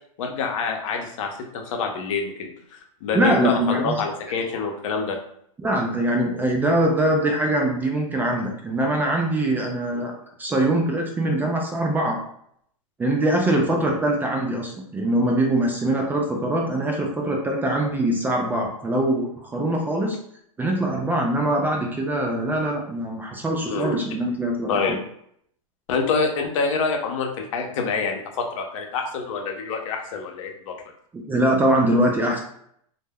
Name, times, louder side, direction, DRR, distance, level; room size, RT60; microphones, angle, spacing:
voice 1, 0.2-5.2 9.9-10.0 23.7-24.0 24.7-25.0 25.9-30.8, left 5 dB, 60° left, 3 dB, 0.7 m, -26 dB
voice 2, 3.1-4.0 5.6-12.2 13.0-20.2 20.6-25.0 31.1-32.4, right 1 dB, 10° right, 1 dB, 0.3 m, -23 dB
2.1 x 2.1 x 3.4 m, 0.70 s
hypercardioid pair, 120°, 18 cm